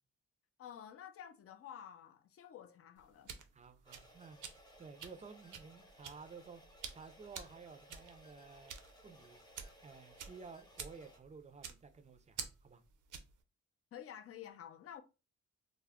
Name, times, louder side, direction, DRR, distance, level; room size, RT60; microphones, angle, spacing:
voice 1, 0.6-3.4 13.9-15.0, left 9 dB, 50° left, 0.4 m, -51 dB
sound 1, 3.0-13.4, right 7 dB, 80° right, 0.5 m, -50 dB
voice 2, 3.5-4.4 4.8-6.6 6.9-8.7 9.0-9.4 9.8-12.8, right 5 dB, 25° right, 0.4 m, -54 dB
sound 2, 3.9-11.2, equal, 15° left, 0.8 m, -61 dB
2.2 x 2.0 x 3.5 m
cardioid pair, 85°, 30 cm